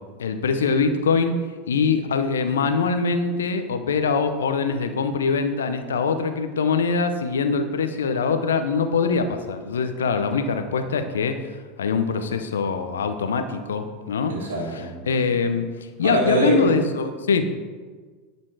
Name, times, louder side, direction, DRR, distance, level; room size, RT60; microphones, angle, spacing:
voice 1, 0.2-1.4 1.7-11.5 11.8-14.4 15.1-15.7 16.0-17.5, left 5 dB, 85° left, 8 dB, 0.7 m, -23 dB
voice 2, 14.3-14.9 16.0-16.7, right 2 dB, 80° right, -3 dB, 1.6 m, -24 dB
10.5 x 4.3 x 4.8 m, 1.5 s
hypercardioid pair, 90°, 0 cm